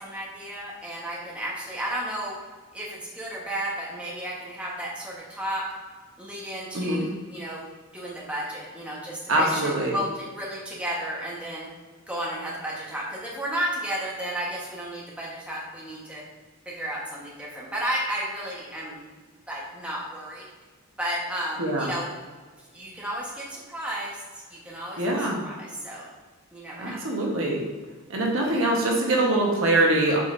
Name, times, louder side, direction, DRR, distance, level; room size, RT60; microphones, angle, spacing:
voice 1, 0.0-2.3 2.7-5.7 6.2-7.6 7.9-11.7 12.1-16.2 16.6-19.0 19.5-20.4 21.0-22.1 22.7-24.2 24.5-26.1 26.5-27.0 28.4-28.7, right 1 dB, 5° right, -6 dB, 1.2 m, -33 dB
voice 2, 6.7-7.1 9.3-10.0 21.6-21.9 25.0-25.4 26.8-27.6 28.1-30.2, right 1 dB, 60° right, -1 dB, 1.2 m, -23 dB
7.4 x 5.3 x 2.6 m, 1.4 s
head